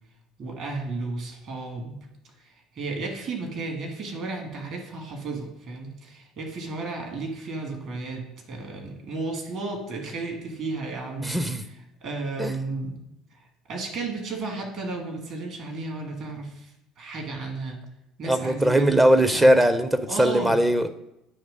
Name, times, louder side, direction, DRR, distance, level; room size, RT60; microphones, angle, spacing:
voice 1, 0.4-2.0 2.8-8.2 8.5-11.3 12.0-13.0 13.7-16.7 17.0-17.8 18.2-19.6 20.1-20.5, right 3 dB, 50° right, 1 dB, 1.9 m, -33 dB
voice 2, 11.2-11.6 12.4-12.5 18.3-20.9, right 1 dB, 10° right, 9 dB, 0.5 m, -20 dB
8.6 x 3.3 x 5.1 m, 0.84 s
figure-of-eight pair, 60°, 0 cm